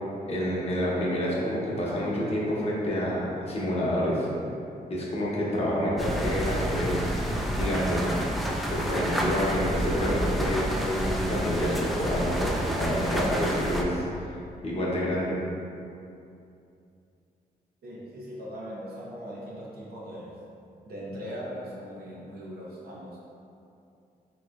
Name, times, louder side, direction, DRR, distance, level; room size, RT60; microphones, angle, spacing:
voice 1, 0.3-4.3 4.9-7.2 7.6-8.1 8.7-14.4 14.6-15.4, equal, 40° left, -6 dB, 0.8 m, -28 dB
sound 1, 6.0-13.8, equal, ahead, 0.3 m, -29 dB
voice 2, 17.8-20.4 20.8-23.2, equal, 70° right, -5 dB, 0.8 m, -39 dB
3.7 x 2.9 x 2.4 m, 2.6 s
cardioid pair, 90°, 17 cm